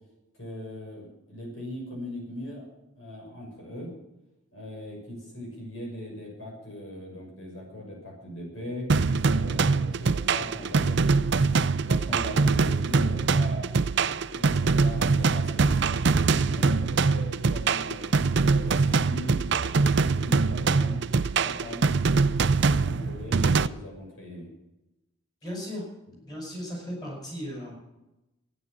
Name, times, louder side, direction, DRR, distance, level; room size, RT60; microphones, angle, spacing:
voice 1, 0.4-2.7 2.9-3.9 4.5-8.9 9.3-13.8 14.3-15.7 16.3-21.0 21.4-22.0 22.5-24.5, left 1 dB, 75° left, -1 dB, 6.3 m, -40 dB
sound 1, 8.9-23.7, right 4 dB, 55° right, 0.5 m, -23 dB
voice 2, 25.4-25.9 26.2-27.8, equal, 20° left, -2 dB, 5.3 m, -36 dB
14.5 x 9.7 x 7.3 m, 0.95 s
head